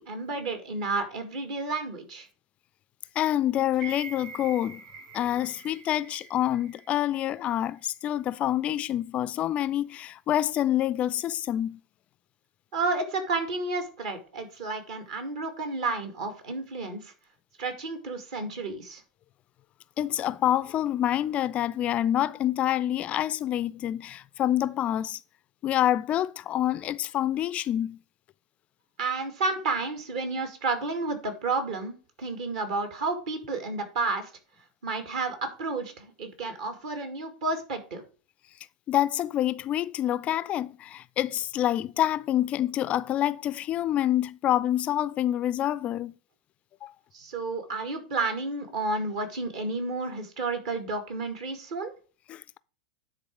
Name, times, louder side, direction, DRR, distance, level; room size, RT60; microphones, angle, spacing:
voice 1, 0.0-2.3 12.7-17.1 17.6-19.0 29.0-34.3 34.8-38.0 47.1-51.9, right 3 dB, 55° right, 2.1 m, -31 dB
voice 2, 3.2-4.8 5.1-11.8 20.0-25.2 25.6-28.0 38.9-46.1 46.8-46.9 52.3-52.6, left 12 dB, 35° left, 0.3 m, -27 dB
sound 1, 3.7-7.9 8.3-8.4, right 5 dB, 40° right, 4.0 m, -45 dB
9.8 x 4.1 x 4.9 m
figure-of-eight pair, 90°, 4 cm